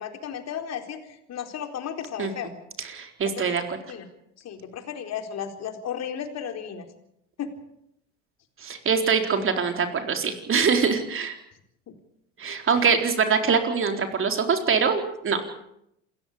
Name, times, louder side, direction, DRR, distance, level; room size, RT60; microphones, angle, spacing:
voice 1, 0.0-2.5 3.4-3.6 3.9-4.1 4.4-6.8 7.4-7.5 11.9-12.0 12.7-12.9, left 8 dB, 45° left, 5 dB, 4.3 m, -34 dB
voice 2, 2.8-3.8 8.6-11.4 12.4-15.6, right 5 dB, 35° right, 5 dB, 4.2 m, -24 dB
27.5 x 14.5 x 8.7 m, 0.77 s
hypercardioid pair, 75°, 37 cm